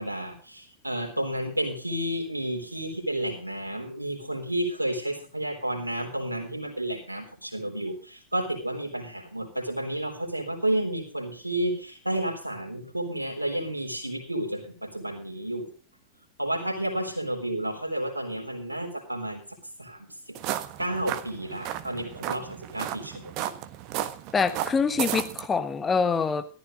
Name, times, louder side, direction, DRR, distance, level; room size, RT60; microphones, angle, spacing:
voice 1, 0.0-15.7 16.4-19.4 19.8-20.4 20.8-23.5, right 1 dB, 85° right, 3.7 m, -31 dB
sound 1, 20.3-25.5, right 12 dB, 40° right, 1.4 m, -34 dB
voice 2, 24.3-26.5, left 5 dB, 15° left, 1.5 m, -25 dB
14.5 x 13.5 x 3.9 m
figure-of-eight pair, 90°, 0 cm